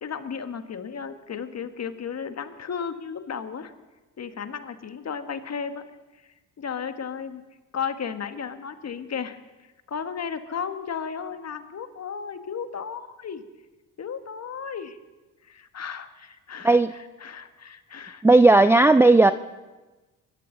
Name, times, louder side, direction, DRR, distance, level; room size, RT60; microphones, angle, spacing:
voice 1, 0.0-3.7 4.2-5.8 6.6-7.4 7.7-9.4 9.9-13.4 14.0-15.0 15.4-18.2, left 6 dB, 35° left, 9 dB, 1.5 m, -34 dB
voice 2, 18.2-19.3, right 2 dB, 5° right, 12 dB, 0.4 m, -15 dB
24.0 x 13.0 x 3.9 m, 1.2 s
hypercardioid pair, 55°, 42 cm